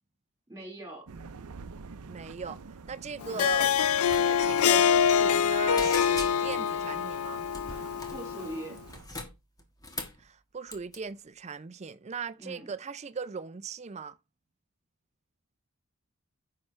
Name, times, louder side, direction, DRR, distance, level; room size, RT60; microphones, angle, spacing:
voice 1, 0.5-1.1 3.3-3.5 8.1-8.8 12.4-12.7, right 1 dB, 15° right, 4.3 m, -41 dB
sound 1, 1.1-9.1, right 4 dB, 85° right, 0.6 m, -47 dB
voice 2, 2.1-2.6 2.9-3.7 4.1-7.4 10.2-14.2, right 5 dB, 30° right, 0.4 m, -39 dB
Harp, 3.2-8.7, left 8 dB, 80° left, 0.5 m, -25 dB
sound 2, 4.1-4.3 4.5-4.7 5.1-5.5 5.8-6.7 7.5-8.2 8.8-10.2 10.7-11.0, left 2 dB, 15° left, 1.4 m, -40 dB
9.6 x 5.8 x 3.2 m
head